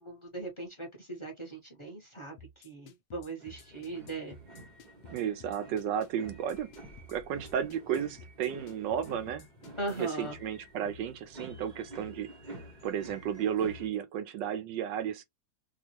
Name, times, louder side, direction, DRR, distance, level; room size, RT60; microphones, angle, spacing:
voice 1, 0.0-4.4 9.8-10.4, right 2 dB, 25° left, 0.7 m, -39 dB
sound 1, 2.4-10.1, left 3 dB, 75° left, 0.7 m, -53 dB
sound 2, 3.4-13.9, right 1 dB, 35° right, 0.7 m, -49 dB
voice 2, 5.1-6.7 7.1-9.5 10.0-15.2, right 9 dB, 70° right, 1.2 m, -33 dB
3.6 x 2.4 x 2.8 m
omnidirectional pair, 2.1 m